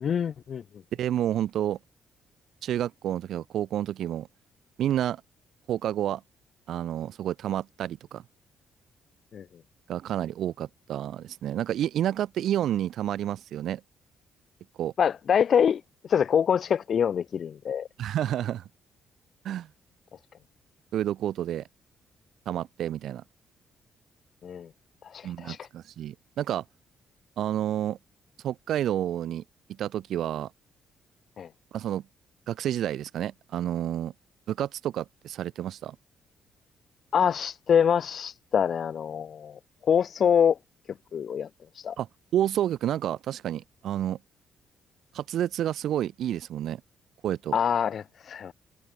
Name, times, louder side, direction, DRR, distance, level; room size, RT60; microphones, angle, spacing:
voice 1, 0.0-0.6 9.3-9.4 15.0-17.9 24.4-24.7 25.0-25.7 31.4-31.5 37.1-40.6 41.1-41.5 41.7-42.0 47.5-48.5, left 8 dB, 55° left, 0.4 m, -25 dB
voice 2, 1.0-1.8 2.6-4.3 4.8-5.2 5.7-6.2 6.7-8.2 9.9-13.8 14.8-14.9 18.0-18.6 19.4-19.7 20.9-21.6 22.5-23.2 25.2-26.6 27.4-28.0 28.4-29.4 29.8-30.5 31.7-32.0 32.5-34.1 34.5-36.0 42.0-42.1 42.3-44.2 45.1-46.8 47.2-47.6, right 11 dB, 75° right, 0.8 m, -29 dB
cardioid pair, 90°, 0 cm